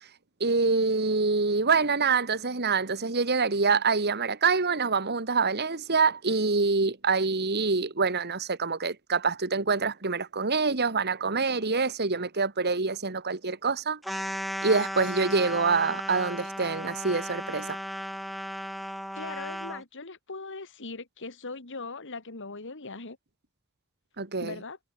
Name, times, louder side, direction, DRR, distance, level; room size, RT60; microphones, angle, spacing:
voice 1, 0.4-14.0 14.6-17.8 24.2-24.6, right 4 dB, 50° right, 2.0 m, -26 dB
sound 1, 14.0-19.8, equal, ahead, 1.2 m, -35 dB
voice 2, 19.2-23.2 24.4-24.8, left 3 dB, 60° left, 2.3 m, -40 dB
head